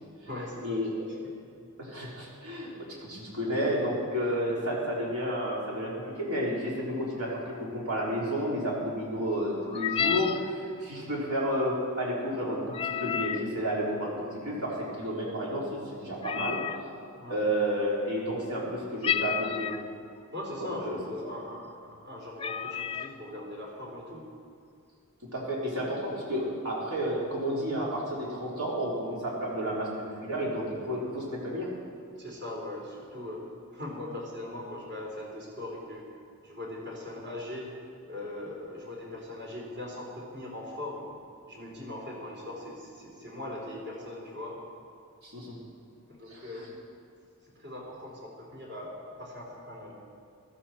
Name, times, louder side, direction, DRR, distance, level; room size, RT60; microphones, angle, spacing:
voice 1, 0.2-1.0 17.2-17.3 20.3-24.3 32.2-33.4 33.7-36.1 36.4-37.7 38.0-41.1 41.5-44.6 46.1-46.7 47.5-50.0, left 1 dB, 50° right, -3 dB, 4.0 m, -40 dB
voice 2, 1.8-16.6 17.3-19.7 20.6-21.0 25.3-31.7 45.2-45.6 46.3-46.6, equal, 75° right, -5 dB, 4.1 m, -31 dB
sound 1, 9.7-10.5 12.7-13.5 16.2-16.8 19.0-19.9 20.7-20.8 21.1-21.4 21.9-22.0 22.4-23.2, left 8 dB, 25° left, 0.3 m, -31 dB
15.5 x 13.0 x 4.4 m, 2.4 s
head